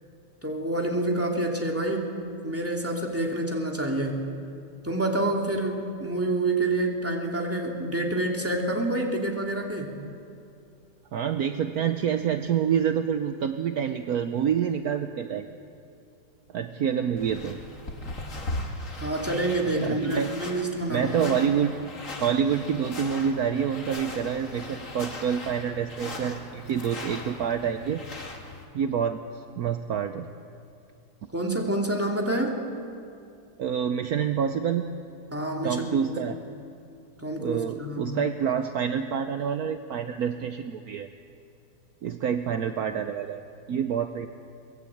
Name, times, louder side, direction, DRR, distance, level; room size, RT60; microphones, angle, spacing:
voice 1, 0.4-2.1 2.4-4.3 4.8-10.0 19.0-21.4 31.3-32.6 35.3-36.0 37.2-38.2, right 1 dB, 10° right, 0 dB, 2.7 m, -28 dB
voice 2, 11.1-15.5 16.5-17.6 19.6-20.3 20.9-21.7 22.2-28.0 28.7-30.3 33.6-34.9 35.6-36.4 37.4-41.1 42.0-43.4 43.7-44.3, right 8 dB, 65° right, 8 dB, 1.2 m, -27 dB
sound 1, 17.2-28.6, left 2 dB, 45° left, 2.4 m, -39 dB
23.0 x 20.0 x 8.6 m, 2.5 s
omnidirectional pair, 1.9 m